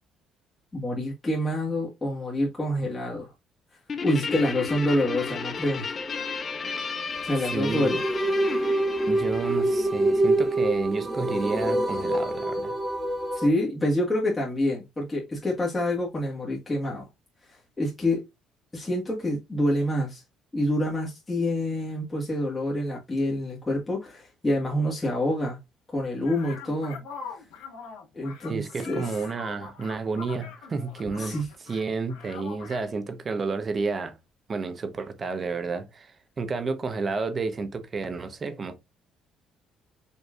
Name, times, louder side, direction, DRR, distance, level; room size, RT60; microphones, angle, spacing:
voice 1, 0.7-3.3 4.0-5.8 7.2-8.0 13.3-17.1 17.5-18.2 18.7-20.2 20.5-25.6 25.9-27.0 28.1-29.0 31.2-31.5, left 1 dB, 20° left, 1.7 m, -27 dB
Guitar, 3.9-10.6, left 5 dB, 35° left, 0.8 m, -33 dB
voice 2, 7.4-8.0 9.1-12.7 28.5-31.4 31.6-34.2 34.5-38.8, right 4 dB, 35° right, 1.0 m, -31 dB
sound 1, 7.5-13.5, right 1 dB, 15° right, 1.3 m, -25 dB
sound 2, 26.2-31.8 32.1-32.8, left 5 dB, 90° left, 1.8 m, -42 dB
5.4 x 3.1 x 2.4 m
cardioid pair, 90°, 0 cm